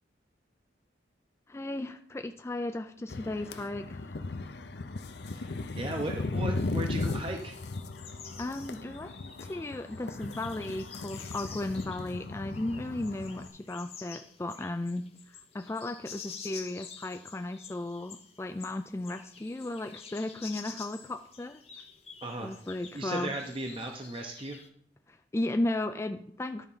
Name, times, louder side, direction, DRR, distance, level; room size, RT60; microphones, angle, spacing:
voice 1, 1.5-4.1 8.4-9.1 9.4-21.6 22.4-23.3 25.1-26.7, left 2 dB, 15° left, 7 dB, 0.3 m, -35 dB
sound 1, 3.1-13.5, left 3 dB, 65° left, 0.6 m, -37 dB
voice 2, 5.2-7.6 22.2-22.5 22.9-24.6, right 2 dB, 30° right, 3 dB, 0.7 m, -37 dB
sound 2, 6.6-24.7, left 6 dB, 35° left, 1.0 m, -49 dB
11.5 x 4.5 x 5.5 m, 0.66 s
head